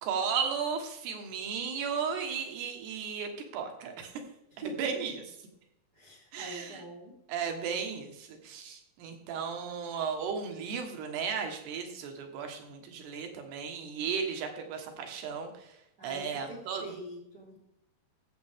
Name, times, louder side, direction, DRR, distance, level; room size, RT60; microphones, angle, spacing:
voice 1, 0.0-4.1 4.8-5.2 6.3-6.8 7.3-15.7 16.0-16.9, right 6 dB, 80° right, 4 dB, 3.4 m, -35 dB
voice 2, 5.9-7.1 16.0-17.6, right 1 dB, 50° right, -3 dB, 1.1 m, -44 dB
14.0 x 7.6 x 3.6 m, 0.82 s
omnidirectional pair, 4.7 m